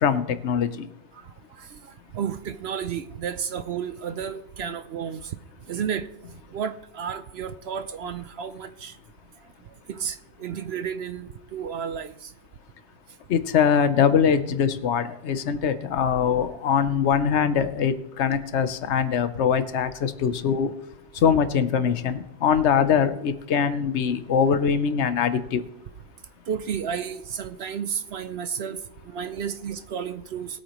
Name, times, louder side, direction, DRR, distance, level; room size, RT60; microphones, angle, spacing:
voice 1, 0.0-0.9 13.3-20.7 21.2-25.6, left 7 dB, 60° left, 11 dB, 1.1 m, -22 dB
voice 2, 1.1-6.1 6.5-9.0 9.7-12.3 26.5-30.6, right 7 dB, 60° right, 11 dB, 0.8 m, -32 dB
20.0 x 8.7 x 3.0 m, 0.87 s
omnidirectional pair, 1.4 m